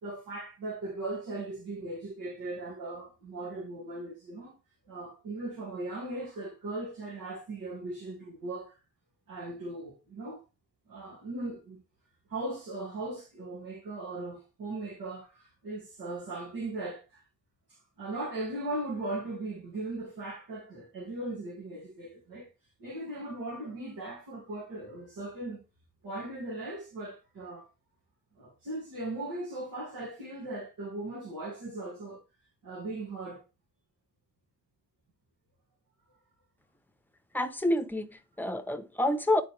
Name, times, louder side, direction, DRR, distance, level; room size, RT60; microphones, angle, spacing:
voice 1, 0.0-4.6 4.9-8.8 9.3-10.4 10.9-11.8 12.3-17.2 17.7-22.5 22.8-25.6 26.0-27.7 28.4-32.2 32.6-33.4, right 2 dB, 80° right, 2.2 m, -38 dB
voice 2, 37.3-39.4, left 1 dB, 5° left, 0.8 m, -28 dB
9.2 x 3.9 x 3.2 m
cardioid pair, 90°, 33 cm